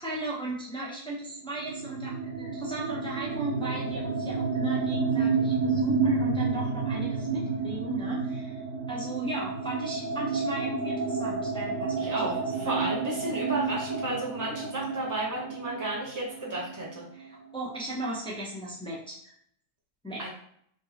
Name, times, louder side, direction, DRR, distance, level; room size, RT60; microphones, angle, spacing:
voice 1, 0.0-8.6 8.9-12.3 12.6-12.9 17.1-19.3 20.0-20.3, right 1 dB, 5° left, -4 dB, 0.4 m, -36 dB
sound 1, 1.6-17.2, right 4 dB, 80° right, 1.3 m, -30 dB
voice 2, 12.0-17.0 20.2-20.3, right 2 dB, 15° right, -3 dB, 0.9 m, -33 dB
4.3 x 2.8 x 3.4 m, 0.66 s
omnidirectional pair, 1.8 m